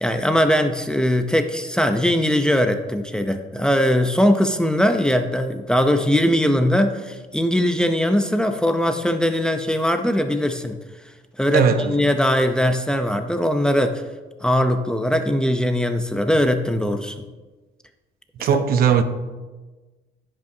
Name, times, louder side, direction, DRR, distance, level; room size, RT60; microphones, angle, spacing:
voice 1, 0.0-10.8 11.4-14.0 14.4-17.2 18.4-18.5, equal, 5° left, 0.6 m, -20 dB
voice 2, 11.5-11.9 18.4-19.0, right 7 dB, 60° right, 0.8 m, -18 dB
15.0 x 5.5 x 2.7 m
cardioid pair, 110°, 17 cm